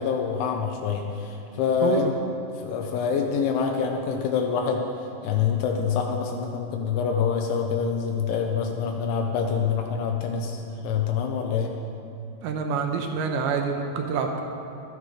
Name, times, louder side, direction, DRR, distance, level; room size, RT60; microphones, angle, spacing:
voice 1, 0.0-2.1 2.6-4.8 5.2-11.7, left 6 dB, 85° left, 2 dB, 3.1 m, -26 dB
voice 2, 12.4-14.4, right 5 dB, 80° right, 3 dB, 2.9 m, -26 dB
12.0 x 10.5 x 4.9 m, 2.8 s
omnidirectional pair, 5.3 m